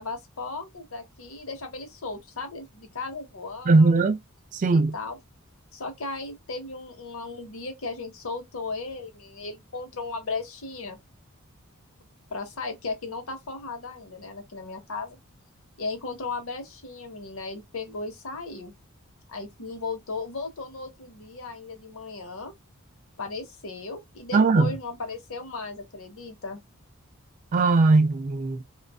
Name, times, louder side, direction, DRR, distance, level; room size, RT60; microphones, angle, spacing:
voice 1, 0.0-4.0 4.7-5.2 5.7-11.0 12.3-15.2 15.8-18.7 19.3-22.5 23.2-26.6, left 3 dB, 65° left, 0.9 m, -36 dB
voice 2, 3.7-4.2 4.5-4.9 24.3-24.7 27.5-28.6, right 3 dB, 35° right, 0.3 m, -19 dB
2.4 x 2.3 x 2.3 m
head